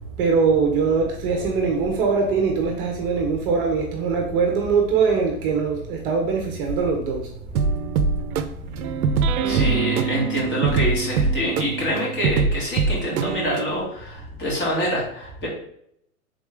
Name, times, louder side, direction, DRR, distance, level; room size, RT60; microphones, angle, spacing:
voice 1, 0.0-7.3, right 5 dB, 40° right, 1 dB, 0.7 m, -22 dB
sound 1, 7.5-13.7, right 5 dB, 70° right, 0.5 m, -23 dB
voice 2, 9.4-15.5, equal, 25° left, -4 dB, 1.7 m, -26 dB
3.6 x 3.1 x 3.5 m, 0.71 s
hypercardioid pair, 125°, 44 cm